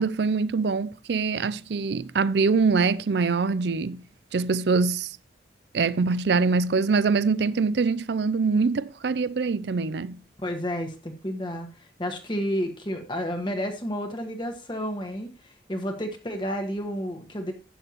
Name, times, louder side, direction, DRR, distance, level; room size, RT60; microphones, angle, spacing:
voice 1, 0.0-4.0 4.3-5.2 5.7-10.2, right 4 dB, 70° right, 0.5 m, -24 dB
voice 2, 10.4-15.3 15.7-17.5, equal, 25° left, 1.4 m, -31 dB
12.0 x 8.8 x 3.0 m
head